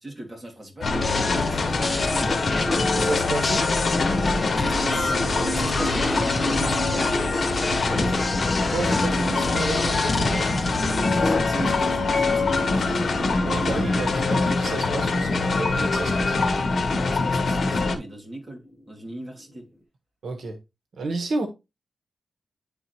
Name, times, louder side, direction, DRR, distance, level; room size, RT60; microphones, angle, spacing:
voice 1, 0.0-2.7 4.6-8.5 11.1-14.0 17.0-18.6 18.9-19.7, right 1 dB, 25° right, 2.4 m, -38 dB
sound 1, 0.8-18.0, left 3 dB, 65° left, 1.1 m, -24 dB
sound 2, 0.9-19.7, left 1 dB, 15° left, 1.2 m, -36 dB
sound 3, 1.0-11.4, left 2 dB, 35° left, 1.0 m, -29 dB
voice 2, 2.9-3.6 8.6-10.5 13.4-16.4 20.2-20.6 20.9-21.5, right 3 dB, 80° right, 1.2 m, -31 dB
10.0 x 3.7 x 2.9 m
wide cardioid pair, 95°, 0 cm